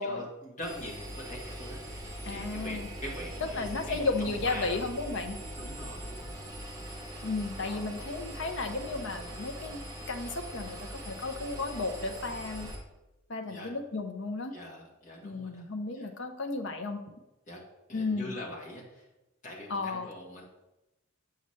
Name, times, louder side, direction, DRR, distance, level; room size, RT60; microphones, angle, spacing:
voice 1, 0.0-4.8 5.6-6.6 7.6-7.8 13.5-13.7 14.5-15.6 15.9-16.1 17.5-17.6 17.9-19.1 19.4-20.4, left 1 dB, 35° left, -2 dB, 1.5 m, -43 dB
Engine, 0.6-12.7, right 1 dB, 15° right, 1.0 m, -41 dB
voice 2, 2.3-2.9 3.5-5.4 7.2-9.8 10.1-12.7 13.3-14.5 15.2-17.0 17.9-18.3 19.7-20.1, left 3 dB, 55° left, 6 dB, 0.7 m, -34 dB
7.1 x 5.6 x 3.2 m, 0.98 s
head